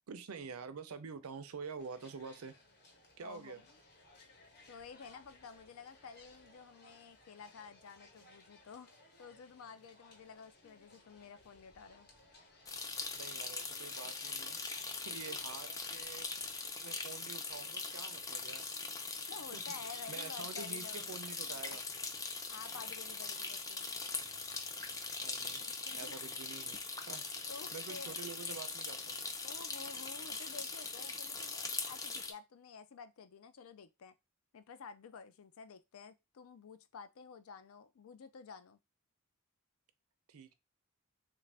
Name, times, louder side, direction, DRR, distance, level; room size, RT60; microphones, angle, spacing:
voice 1, 0.1-2.5 3.2-3.6 13.1-14.6 15.0-16.3 16.8-18.7 19.5-19.8 20.1-21.9 25.2-25.7 25.9-26.8 27.1-29.2 40.3-40.5, right 5 dB, 85° right, 0.5 m, -47 dB
sound 1, 1.8-16.7, left 2 dB, 50° left, 1.0 m, -62 dB
voice 2, 3.2-3.8 4.7-12.1 15.3-15.4 19.3-21.1 22.5-23.9 25.5-26.1 27.5-28.2 29.4-34.2 34.5-38.8, left 5 dB, 75° left, 0.4 m, -51 dB
sound 2, 12.7-32.3, left 4 dB, 15° left, 0.4 m, -41 dB
3.2 x 2.5 x 3.3 m
head